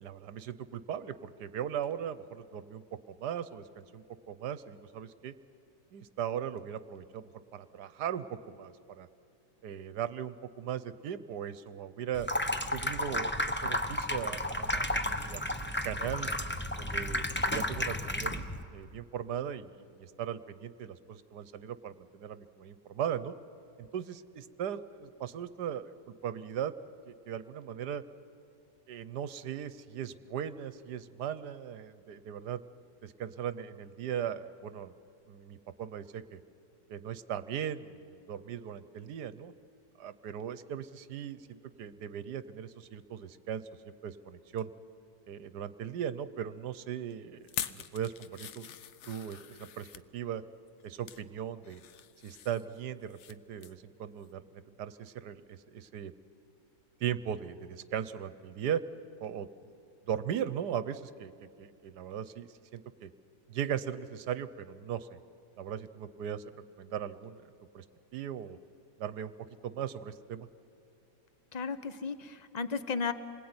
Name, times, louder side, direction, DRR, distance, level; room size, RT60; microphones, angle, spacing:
voice 1, 0.0-5.3 5.9-9.1 9.6-12.3 12.7-16.3 16.8-18.4 18.7-23.3 23.8-26.7 27.1-28.0 28.9-32.6 33.0-34.9 35.3-36.4 36.9-39.5 40.0-44.7 45.3-48.7 49.1-49.9 50.1-50.4 50.8-51.8 52.2-56.1 57.0-58.8 59.2-59.5 60.1-63.1 63.5-65.2 65.6-66.5 66.8-67.8 68.1-68.6 69.0-69.3 69.6-70.5, right 9 dB, 75° right, 14 dB, 1.3 m, -38 dB
Water tap faucet / Sink (filling or washing), 12.1-18.6, left 1 dB, 10° left, 0.5 m, -32 dB
sound 1, 47.4-50.1 50.7-51.2 51.6-53.3 53.6-53.8 54.2-54.3, left 8 dB, 55° left, 0.9 m, -43 dB
voice 2, 71.5-73.1, left 5 dB, 30° left, 11 dB, 0.9 m, -34 dB
27.5 x 20.5 x 9.6 m, 2.7 s
omnidirectional pair, 1.8 m